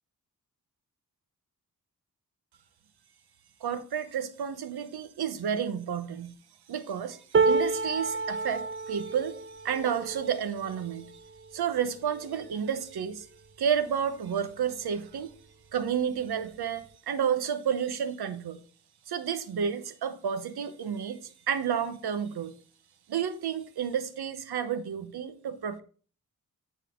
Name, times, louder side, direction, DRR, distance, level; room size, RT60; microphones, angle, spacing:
voice 1, 3.6-6.3 6.7-11.1 11.5-13.3 13.6-15.3 15.7-18.6 19.1-22.5 23.1-25.8, right 8 dB, 85° right, 0.9 m, -31 dB
sound 1, 7.3-13.5 14.1-14.3 14.6-15.3 16.3-16.4, right 4 dB, 35° right, 0.5 m, -31 dB
9.2 x 4.1 x 5.1 m
cardioid pair, 55°, 37 cm